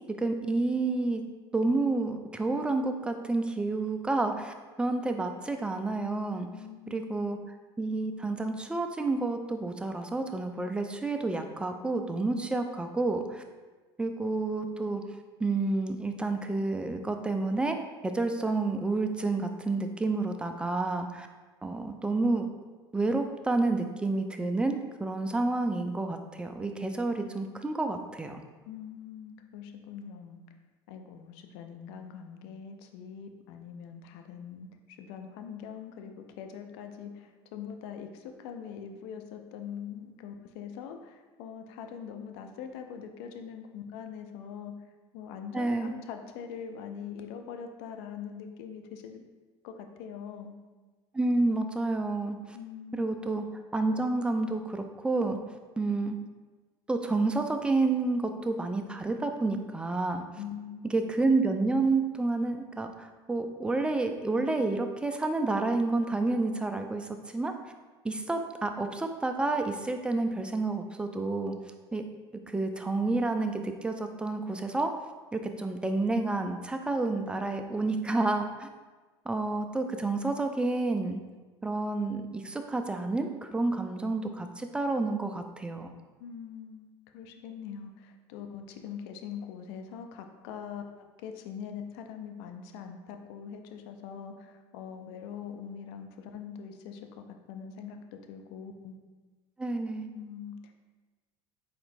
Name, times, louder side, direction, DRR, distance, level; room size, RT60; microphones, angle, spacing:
voice 1, 0.2-1.2 1.5-6.5 6.9-7.4 7.8-13.4 14.0-15.0 15.4-17.8 18.0-21.3 21.6-22.5 22.9-28.4 45.5-45.9 51.1-52.6 52.9-53.4 53.7-55.4 55.8-56.2 56.9-60.2 60.8-67.5 68.0-71.5 71.9-72.0 72.5-74.9 75.3-78.7 79.3-81.2 81.6-85.9 99.6-100.1, right 3 dB, 5° right, 6 dB, 0.4 m, -29 dB
voice 2, 6.5-7.4 28.7-30.4 30.9-44.7 45.1-49.2 49.6-50.5 52.5-53.3 60.3-61.0 86.2-98.9 100.1-100.7, left 7 dB, 65° left, 6 dB, 0.5 m, -43 dB
4.2 x 3.9 x 2.6 m, 1.3 s
hypercardioid pair, 75°, 14 cm